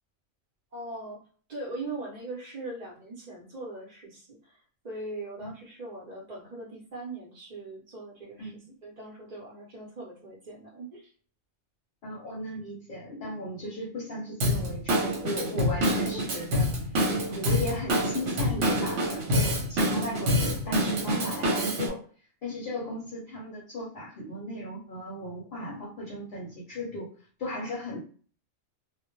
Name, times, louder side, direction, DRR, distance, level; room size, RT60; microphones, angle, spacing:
voice 1, 0.7-1.2 1.5-8.5 8.8-11.1 15.8-16.2, right 2 dB, 45° right, -5 dB, 0.7 m, -40 dB
voice 2, 12.0-16.6 17.3-22.0 22.4-27.1 27.4-28.0, left 1 dB, 60° left, -3 dB, 0.7 m, -36 dB
Drum kit / Drum, 14.4-21.9, equal, 80° right, 1.0 m, -27 dB
2.1 x 2.0 x 2.9 m, 0.43 s
omnidirectional pair, 1.2 m